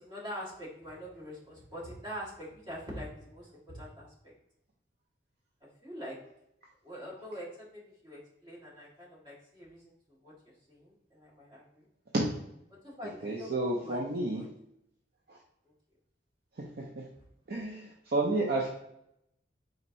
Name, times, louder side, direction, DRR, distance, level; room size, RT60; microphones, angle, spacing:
voice 1, 0.0-4.1 5.8-6.2 6.8-10.3 10.7-11.8 12.8-14.5, equal, 25° right, -6 dB, 1.5 m, -44 dB
voice 2, 13.2-14.4 17.5-18.7, right 2 dB, 60° right, -1 dB, 0.6 m, -30 dB
4.3 x 3.9 x 2.6 m, 0.78 s
head